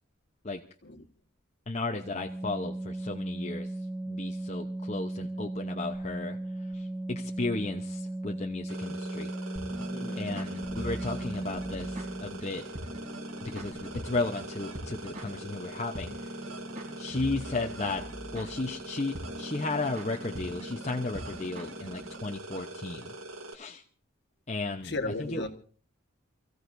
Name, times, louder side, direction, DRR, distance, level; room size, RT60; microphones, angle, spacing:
voice 1, 1.7-3.7 4.1-9.3 9.8-12.6 13.4-16.4 17.0-18.1 18.3-23.1 23.5-23.8 24.5-24.9 25.2-25.4, left 3 dB, 30° left, 0.8 m, -34 dB
Organ, 2.0-12.6, right 1 dB, ahead, 1.0 m, -36 dB
sound 1, 8.7-23.5, right 2 dB, 80° right, 2.4 m, -43 dB
sound 2, 9.6-22.4, equal, 35° right, 3.2 m, -42 dB
voice 2, 9.9-10.5 13.6-13.8 16.8-17.1 24.8-25.5, left 2 dB, 55° left, 1.6 m, -37 dB
29.0 x 15.0 x 2.6 m
head